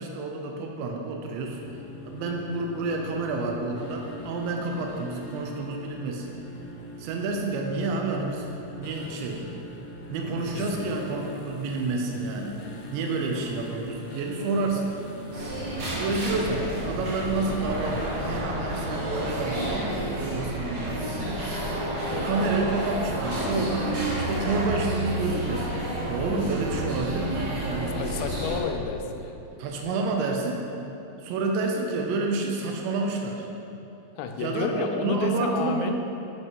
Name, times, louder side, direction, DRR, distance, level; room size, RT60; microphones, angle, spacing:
voice 1, 0.0-1.6 2.0-6.3 7.0-9.5 10.1-12.6 12.9-15.0 15.9-21.4 22.1-25.7 26.1-28.0 29.6-30.6 31.2-33.5 34.4-35.9, right 3 dB, 90° right, 1 dB, 3.1 m, -29 dB
sound 1, 1.3-18.3, left 1 dB, 75° left, 2.0 m, -43 dB
voice 2, 10.6-10.9 28.0-29.4 34.2-35.9, left 6 dB, 90° left, 6 dB, 2.9 m, -31 dB
sound 2, 15.3-28.6, right 1 dB, 50° right, 2.6 m, -30 dB
9.6 x 5.3 x 5.3 m, 2.9 s
omnidirectional pair, 5.0 m